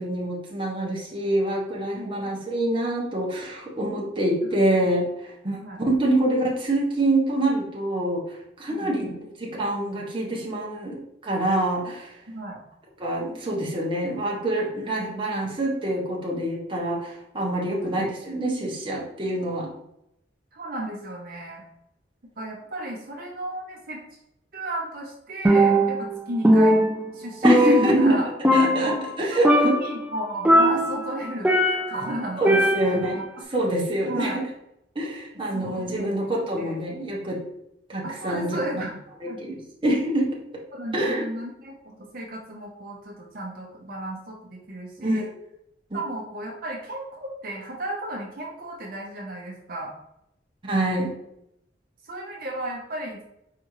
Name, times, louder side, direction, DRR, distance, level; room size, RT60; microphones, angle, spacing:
voice 1, 0.0-5.6 5.9-12.1 13.0-19.7 27.4-28.2 28.5-29.7 32.4-33.2 33.5-34.5 34.9-37.4 37.9-38.8 39.4-40.3 40.9-41.2 45.0-45.3 45.9-46.0 50.6-51.1, right 1 dB, 30° right, -3 dB, 1.0 m, -26 dB
voice 2, 12.3-12.6 17.7-17.9 20.5-21.6 22.4-24.0 24.5-26.8 27.1-28.2 28.8-29.0 29.3-33.2 34.1-34.4 35.5-36.1 36.6-36.8 38.0-39.0 39.3-39.4 40.7-45.2 45.9-49.9 52.0-53.2, right 1 dB, 55° right, -2 dB, 0.9 m, -34 dB
Percussion, 25.4-26.1 26.4-28.2 28.4-29.1 29.4-30.0 30.4-32.0 32.4-33.1, equal, 10° right, 0.4 m, -19 dB
4.9 x 3.4 x 3.1 m, 0.80 s
head